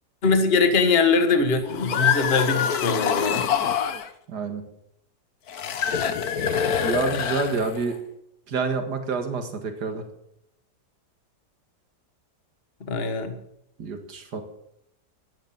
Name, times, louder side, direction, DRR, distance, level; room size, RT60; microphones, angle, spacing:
voice 1, 0.2-3.5 12.8-13.4, left 4 dB, 35° left, 7 dB, 1.6 m, -22 dB
sound 1, 1.7-4.1 5.5-7.9, left 8 dB, 65° left, 1.5 m, -25 dB
voice 2, 4.3-4.6 6.8-8.0 8.5-10.0 13.8-14.4, right 4 dB, 70° right, 6 dB, 2.3 m, -28 dB
13.5 x 11.0 x 7.4 m, 0.78 s
omnidirectional pair, 1.8 m